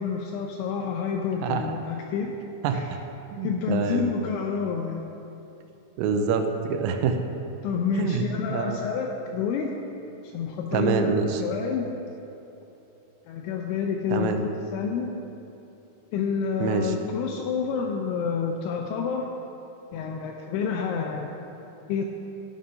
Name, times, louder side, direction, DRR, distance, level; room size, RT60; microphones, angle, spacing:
voice 1, 0.0-2.4 2.7-2.9 3.4-5.0 7.6-9.7 10.2-11.9 13.3-15.2 16.1-19.3 19.9-21.3 21.9-22.1, left 6 dB, 85° left, 2 dB, 2.6 m, -28 dB
voice 2, 1.4-1.7 2.6-3.0 3.3-4.1 6.0-7.2 7.9-8.8 10.7-11.4 14.1-14.4 16.6-16.9, right 6 dB, 90° right, 6 dB, 3.3 m, -26 dB
14.5 x 10.5 x 2.6 m, 3.0 s
omnidirectional pair, 5.9 m